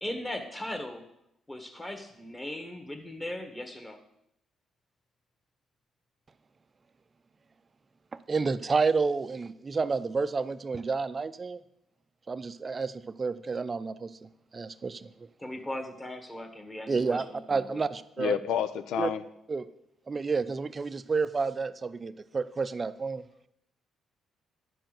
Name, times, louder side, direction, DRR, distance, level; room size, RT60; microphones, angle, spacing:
voice 1, 0.0-1.0 1.5-4.0 15.4-17.8, left 1 dB, 20° left, 6 dB, 1.6 m, -38 dB
voice 2, 8.3-11.6 12.3-14.1 14.5-15.1 16.9-18.4 19.0-19.1 19.5-19.6 20.1-23.3, right 4 dB, 35° right, 13 dB, 0.5 m, -30 dB
voice 3, 18.2-19.2, left 9 dB, 85° left, 12 dB, 0.5 m, -29 dB
10.5 x 4.5 x 7.7 m, 0.78 s
cardioid pair, 90°, 0 cm